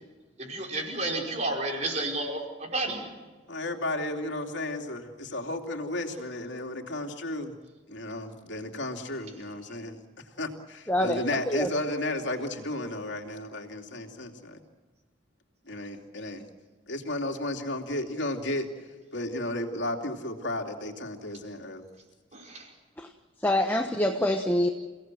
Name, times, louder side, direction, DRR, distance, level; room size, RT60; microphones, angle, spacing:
voice 1, 0.4-3.1 22.3-22.7, right 2 dB, 35° right, 1 dB, 5.0 m, -31 dB
voice 2, 3.5-7.5 7.9-10.0 10.4-14.6 15.7-16.5 16.9-18.7 19.1-21.8, left 1 dB, 65° left, 4 dB, 2.8 m, -33 dB
voice 3, 10.9-11.2 11.5-11.7 23.0-23.1 23.4-24.7, left 1 dB, 10° left, 4 dB, 1.0 m, -25 dB
29.0 x 17.5 x 7.7 m, 1.3 s
head